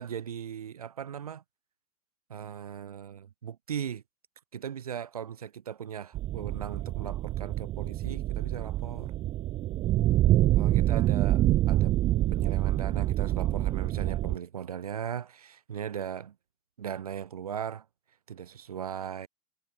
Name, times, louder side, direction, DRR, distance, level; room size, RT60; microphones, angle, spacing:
voice 1, 0.0-1.4 2.3-4.0 4.5-9.1 10.5-12.0 12.3-16.4 16.8-17.9 18.3-19.3, right 8 dB, 90° right, 0.8 m, -38 dB
sound 1, 6.1-14.4, right 14 dB, 30° right, 0.4 m, -26 dB
hypercardioid pair, 90°, 18 cm